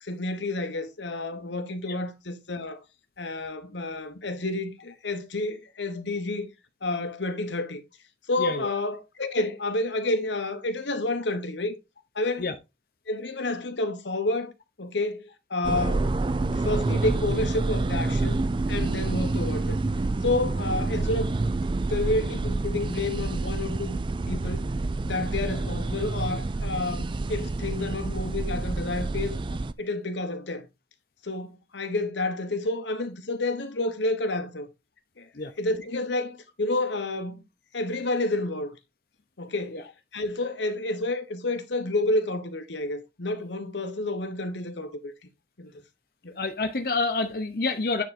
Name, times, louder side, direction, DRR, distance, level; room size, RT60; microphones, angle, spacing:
voice 1, 0.0-2.8 3.2-6.5 6.8-7.8 8.3-11.8 12.1-12.5 13.1-14.5 14.8-15.2 15.5-16.1 16.4-19.8 20.2-21.3 21.9-24.0 24.3-24.7 25.0-29.4 29.8-30.7 31.2-34.7 35.2-35.3 35.6-37.4 37.7-38.8 39.4-39.8 40.1-45.1 45.6-45.7 46.2-46.3, left 2 dB, 90° left, 1.2 m, -29 dB
sound 1, 15.6-29.7, right 2 dB, 25° right, 0.3 m, -28 dB
voice 2, 46.4-48.0, left 3 dB, 55° left, 0.8 m, -28 dB
9.2 x 3.7 x 4.3 m
head